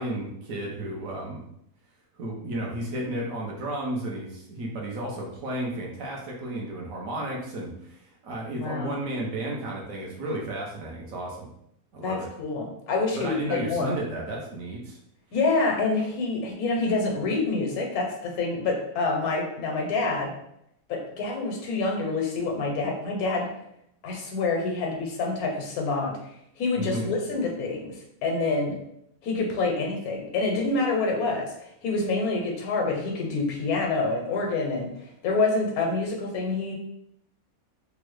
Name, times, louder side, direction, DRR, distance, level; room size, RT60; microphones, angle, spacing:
voice 1, 0.0-1.4 2.1-11.5 11.9-12.3 13.2-15.0 26.8-27.1, right 1 dB, 70° right, -2 dB, 1.2 m, -33 dB
voice 2, 8.5-8.9 12.0-13.9 15.3-20.3 20.9-23.5 24.0-28.8 29.2-31.5 31.8-36.7, left 3 dB, 90° left, 0 dB, 1.2 m, -27 dB
3.5 x 2.0 x 3.1 m, 0.75 s
omnidirectional pair, 1.5 m